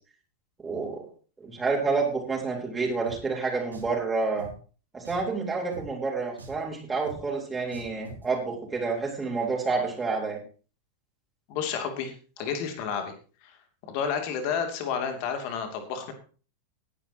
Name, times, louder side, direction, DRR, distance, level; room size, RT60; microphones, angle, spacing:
voice 1, 0.6-1.1 1.4-4.5 4.9-10.4, right 4 dB, 15° right, -2 dB, 3.9 m, -29 dB
Drum, 3.1-3.2 3.7-4.0 4.4-4.5 5.0-5.3 5.7-5.9 6.4-6.6 7.1-7.2 7.7-8.2, right 2 dB, 80° right, 3.0 m, -43 dB
voice 2, 11.5-13.1 13.4-13.6 13.8-16.1, left 7 dB, 45° left, 6 dB, 2.7 m, -31 dB
18.5 x 10.0 x 2.9 m, 0.37 s
figure-of-eight pair, 90°, 0 cm